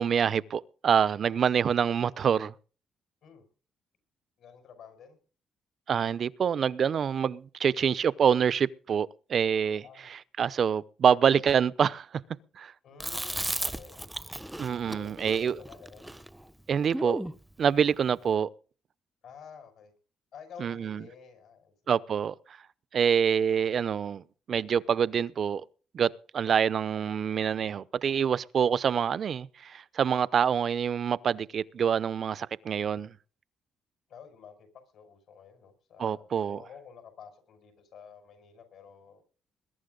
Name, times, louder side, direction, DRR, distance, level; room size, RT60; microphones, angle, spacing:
voice 1, 0.0-2.5 5.9-9.8 10.1-12.1 12.6-12.7 14.6-15.5 16.7-17.2 17.6-18.5 20.6-21.0 21.9-22.3 22.9-25.6 25.9-33.1 36.0-36.6, right 7 dB, 55° right, 0.7 m, -26 dB
voice 2, 4.4-5.2 9.8-10.1 12.8-14.1 14.8-16.1 19.2-19.9 20.3-21.7 34.1-39.2, left 6 dB, 70° left, 5.8 m, -51 dB
Chewing mastication, 13.0-17.4, right 1 dB, 5° right, 0.8 m, -35 dB
21.5 x 11.0 x 3.9 m
cardioid pair, 90°, 0 cm